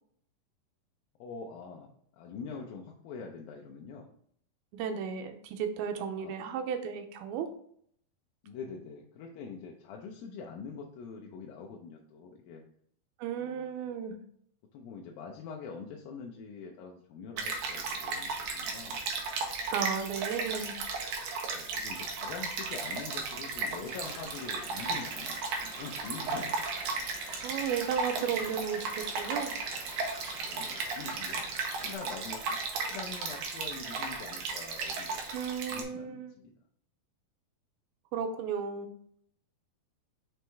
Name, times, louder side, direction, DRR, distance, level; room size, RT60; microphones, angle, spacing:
voice 1, 1.2-4.1 6.2-6.4 8.4-12.6 13.4-13.9 14.7-19.1 21.5-26.7 30.4-36.5, left 5 dB, 80° left, 0 dB, 2.4 m, -44 dB
voice 2, 4.7-7.5 13.2-14.2 19.7-20.9 27.4-29.6 35.3-36.3 38.1-38.9, right 7 dB, 90° right, 6 dB, 2.6 m, -34 dB
Stream, 17.4-35.8, right 4 dB, 70° right, 2.0 m, -35 dB
sound 1, 23.8-32.0, left 2 dB, 45° left, 1.4 m, -49 dB
6.2 x 4.6 x 3.4 m, 0.63 s
omnidirectional pair, 4.3 m